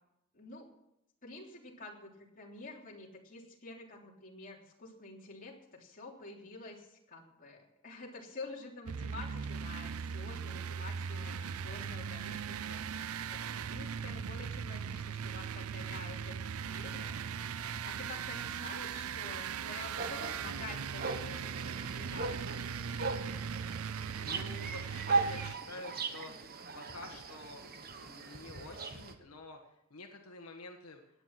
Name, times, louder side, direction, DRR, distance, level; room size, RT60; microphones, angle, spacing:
voice 1, 0.3-0.7 1.2-12.9 13.3-17.2 17.8-22.5, left 3 dB, 40° left, -2 dB, 3.3 m, -49 dB
sound 1, 8.9-25.5, right 7 dB, 75° right, 0.5 m, -39 dB
sound 2, 20.0-29.1, right 4 dB, 45° right, 1.2 m, -38 dB
voice 2, 24.2-31.0, left 2 dB, 80° left, 2 dB, 1.6 m, -49 dB
16.5 x 10.0 x 5.9 m, 0.83 s
head